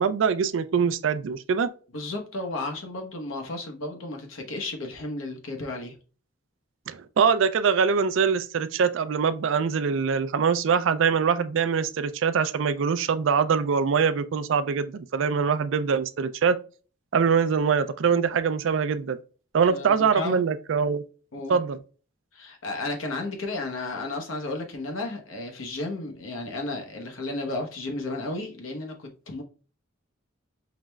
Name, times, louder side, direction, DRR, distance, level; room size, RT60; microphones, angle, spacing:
voice 1, 0.0-1.7 6.9-16.6 17.1-19.2 19.5-21.0 21.5-21.8, right 6 dB, 70° right, 0.4 m, -23 dB
voice 2, 1.9-6.0 19.7-20.4 21.3-21.6 22.3-29.4, left 2 dB, 85° left, 0.9 m, -33 dB
4.9 x 3.1 x 2.2 m
head